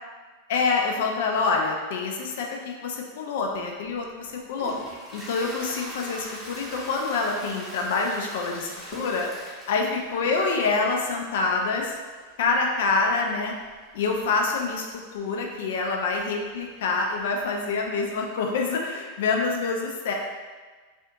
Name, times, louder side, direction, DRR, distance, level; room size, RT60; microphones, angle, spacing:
voice 1, 0.5-4.7 5.1-12.0 12.4-13.6 13.9-14.9 15.1-20.1, left 4 dB, 55° left, 1 dB, 0.3 m, -26 dB
Toilet flush, 3.5-18.3, equal, 5° right, 0.7 m, -44 dB
2.5 x 2.3 x 2.7 m, 1.4 s
figure-of-eight pair, 90°, 0 cm